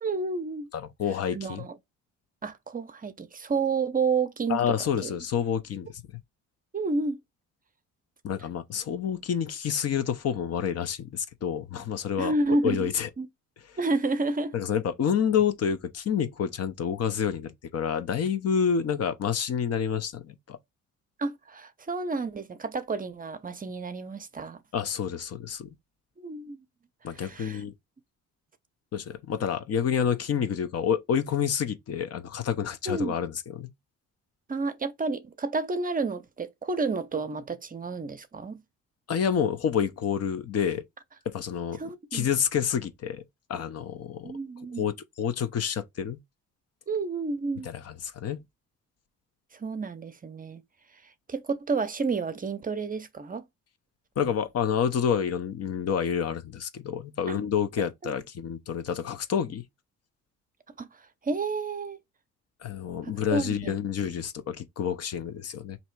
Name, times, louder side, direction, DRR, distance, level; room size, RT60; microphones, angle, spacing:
voice 1, 0.0-0.7 1.3-1.8 2.4-4.7 5.0-5.1 6.7-7.2 12.2-12.9 13.2-13.3 13.8-14.5 21.2-24.6 26.2-26.6 27.1-27.6 32.9-33.2 34.5-38.6 41.8-42.3 44.2-44.9 46.9-47.7 49.5-50.6 51.3-53.4 57.3-57.4 58.0-58.1 60.8-60.9 61.2-62.0 63.0-63.8, right 3 dB, 30° right, 0.6 m, -30 dB
voice 2, 0.7-1.6 4.5-6.2 8.2-12.3 12.6-13.1 14.5-20.6 24.7-25.7 27.0-27.7 28.9-33.7 39.1-40.8 41.3-41.8 42.1-43.2 43.5-44.3 44.8-46.2 47.6-48.4 54.2-59.6 62.6-65.8, left 8 dB, 55° left, 0.7 m, -28 dB
3.0 x 2.8 x 4.5 m
cardioid pair, 90°, 30 cm